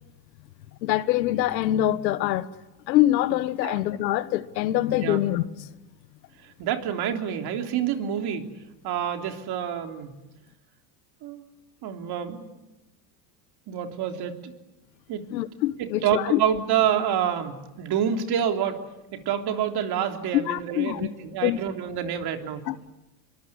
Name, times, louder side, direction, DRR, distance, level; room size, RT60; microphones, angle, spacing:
voice 1, 0.8-2.5 2.9-5.7 15.3-16.4 20.3-21.1 21.4-21.6 22.7-22.9, left 14 dB, 90° left, 1.4 m, -24 dB
voice 2, 6.4-8.5 8.8-10.1 11.2-11.4 11.8-12.6 13.7-14.5 15.1-15.3 15.8-18.8 19.1-22.7, right 9 dB, 50° right, 3.5 m, -27 dB
26.5 x 23.0 x 9.8 m
supercardioid pair, 110°, 50 cm